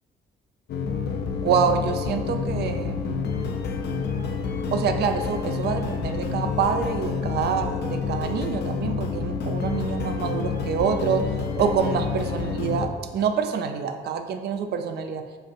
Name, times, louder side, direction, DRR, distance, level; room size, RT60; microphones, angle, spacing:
sound 1, 0.7-12.9, left 5 dB, 60° left, 0.5 m, -28 dB
voice 1, 1.4-3.3 4.7-15.2, right 6 dB, 55° right, 7 dB, 0.4 m, -26 dB
5.6 x 2.5 x 2.4 m, 1.5 s
cardioid pair, 90°, 20 cm